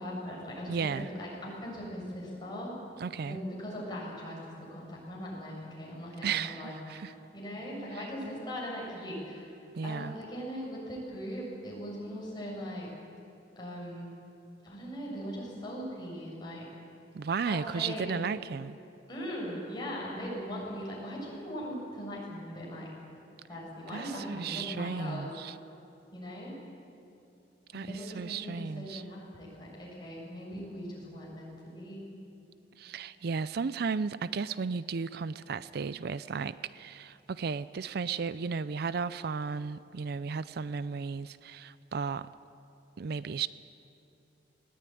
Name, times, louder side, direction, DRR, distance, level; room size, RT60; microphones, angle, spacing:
voice 1, 0.0-2.7 3.2-4.4 4.7-9.5 9.8-12.9 13.6-14.1 14.6-16.7 17.4-18.2 19.1-22.9 23.5-25.3 26.1-26.6 27.7-32.1, equal, 25° left, -4 dB, 7.5 m, -40 dB
voice 2, 0.7-1.1 3.0-3.4 6.2-7.1 7.9-8.1 9.7-10.2 17.1-18.8 23.9-25.6 27.7-29.0 32.8-42.3 43.0-43.5, right 5 dB, 60° right, 16 dB, 0.4 m, -34 dB
20.0 x 18.0 x 9.3 m, 2.7 s
head